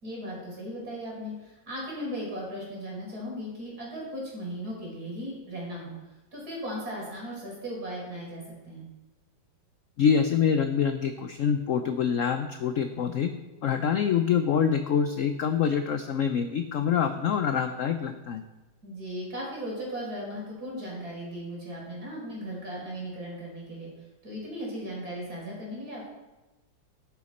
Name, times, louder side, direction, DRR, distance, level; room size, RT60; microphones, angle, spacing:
voice 1, 0.0-5.9 6.3-8.8 18.8-26.1, equal, 55° right, -3 dB, 4.6 m, -37 dB
voice 2, 10.0-13.3 13.6-18.4, left 7 dB, 75° left, 8 dB, 0.7 m, -25 dB
11.5 x 9.4 x 4.2 m, 1.1 s
omnidirectional pair, 2.0 m